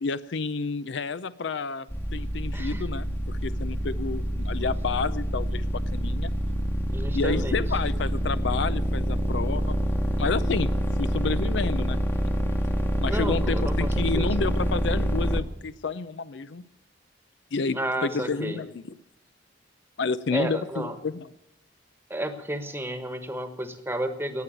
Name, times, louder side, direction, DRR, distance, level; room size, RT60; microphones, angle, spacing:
voice 1, 0.0-6.3 7.1-9.8 10.2-10.7 11.0-12.0 13.0-16.7 17.5-18.8 20.0-21.3, left 4 dB, 65° left, 15 dB, 0.5 m, -30 dB
sound 1, 1.9-15.4, equal, 10° left, 1.1 m, -27 dB
voice 2, 2.5-2.8 4.6-4.7 6.9-7.6 13.0-14.4 17.7-18.6 20.3-20.9 22.1-24.4, right 1 dB, 10° right, 9 dB, 1.3 m, -32 dB
18.5 x 7.7 x 9.2 m, 0.81 s
head